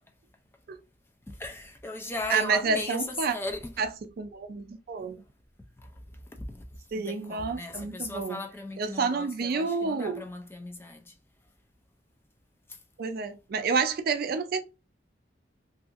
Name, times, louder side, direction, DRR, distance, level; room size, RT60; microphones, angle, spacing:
voice 1, 1.3-3.8 5.8-11.2 12.7-12.8, left 2 dB, 15° left, 0.3 m, -37 dB
voice 2, 2.3-3.3 3.8-3.9 4.2-5.2 6.9-8.4 8.8-10.2 13.0-14.6, right 4 dB, 60° right, 0.4 m, -29 dB
2.7 x 2.5 x 2.4 m
head